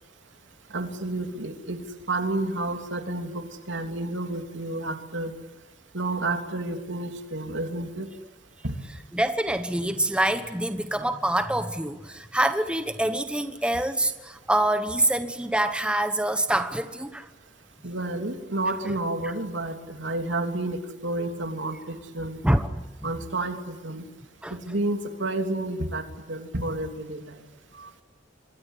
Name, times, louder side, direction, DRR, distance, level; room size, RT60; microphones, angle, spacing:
voice 1, 0.7-5.3 5.9-8.1 8.6-8.7 17.8-22.4 23.0-24.0 24.5-27.3 27.8-27.9, right 2 dB, 80° right, 5 dB, 3.3 m, -30 dB
voice 2, 9.1-17.3 19.2-19.3 22.4-23.1 24.4-24.6, right 1 dB, 5° right, 8 dB, 1.2 m, -26 dB
26.5 x 23.5 x 8.5 m, 1.1 s
head